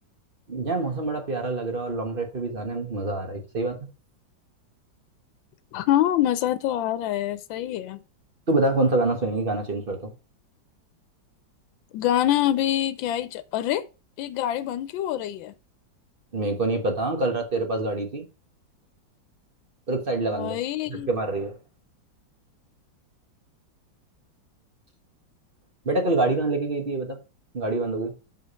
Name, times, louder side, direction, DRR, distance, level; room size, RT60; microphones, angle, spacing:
voice 1, 0.5-3.9 8.5-10.1 16.3-18.2 19.9-20.6 20.9-21.6 25.8-27.2 27.5-28.1, right 2 dB, 30° right, 1.2 m, -26 dB
voice 2, 5.7-8.0 11.9-13.9 14.2-15.5 20.3-21.1, left 12 dB, 90° left, 1.4 m, -25 dB
6.7 x 5.1 x 4.1 m
omnidirectional pair, 2.0 m